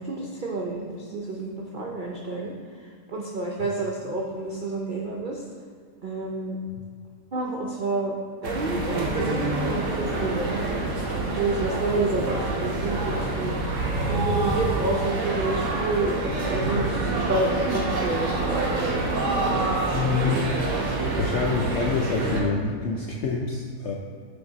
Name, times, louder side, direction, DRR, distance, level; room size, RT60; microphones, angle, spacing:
voice 1, 0.0-2.5 3.1-5.4 6.0-6.6 7.3-8.1 8.4-10.8 11.3-13.6 14.1-18.9, right 2 dB, 80° right, -2 dB, 0.4 m, -29 dB
sound 1, 8.4-22.4, right 2 dB, 55° right, 1.3 m, -27 dB
voice 2, 19.9-20.5 21.2-23.9, left 4 dB, 75° left, 0 dB, 0.6 m, -26 dB
8.1 x 3.6 x 4.0 m, 2.1 s
omnidirectional pair, 1.7 m